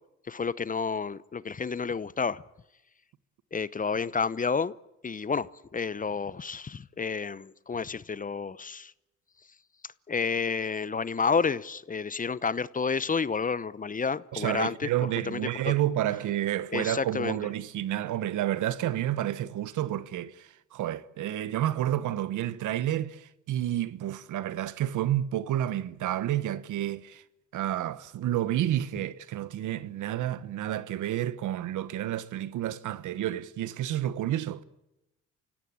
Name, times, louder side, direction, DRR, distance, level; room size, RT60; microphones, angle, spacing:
voice 1, 0.3-2.4 3.5-4.7 5.0-8.9 10.1-14.9 15.3-15.4 15.7-15.8 16.7-17.4, left 5 dB, 25° left, 0.8 m, -30 dB
voice 2, 14.3-27.2 27.5-34.6, right 12 dB, 80° right, 1.2 m, -30 dB
29.0 x 16.5 x 8.7 m
cardioid pair, 90°, 30 cm